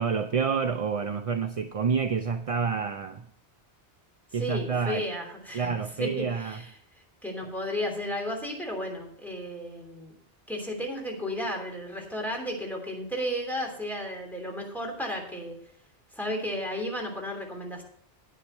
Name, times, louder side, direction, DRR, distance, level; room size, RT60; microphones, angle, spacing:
voice 1, 0.0-3.3 4.3-5.1 5.5-6.6, right 6 dB, 50° right, 8 dB, 0.4 m, -28 dB
voice 2, 4.4-5.7 6.0-6.7 7.2-10.1 10.5-15.5 16.1-17.8, equal, ahead, -1 dB, 2.9 m, -33 dB
10.0 x 9.3 x 4.4 m, 0.65 s
omnidirectional pair, 1.2 m